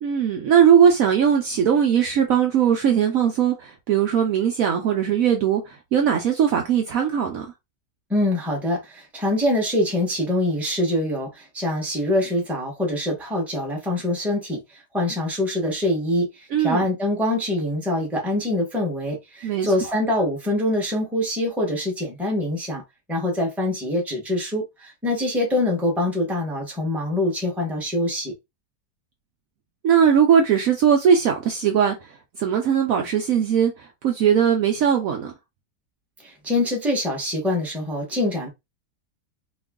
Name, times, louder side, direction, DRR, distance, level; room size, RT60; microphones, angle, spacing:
voice 1, 0.0-7.5 16.5-16.8 19.4-19.9 29.8-31.9 32.4-35.3, right 8 dB, 65° right, 0.9 m, -19 dB
voice 2, 8.1-22.8 23.1-28.3 36.2-38.5, left 1 dB, ahead, 0.9 m, -24 dB
3.0 x 2.4 x 3.5 m
omnidirectional pair, 1.8 m